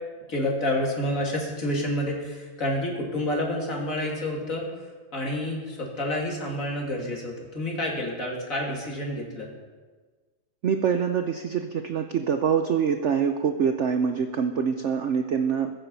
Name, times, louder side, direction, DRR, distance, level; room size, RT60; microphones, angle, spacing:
voice 1, 0.3-4.7 5.1-9.5, left 1 dB, 40° left, -2 dB, 3.0 m, -29 dB
voice 2, 10.6-15.7, right 7 dB, 75° right, 7 dB, 0.6 m, -25 dB
22.0 x 7.5 x 5.5 m, 1.4 s
omnidirectional pair, 2.1 m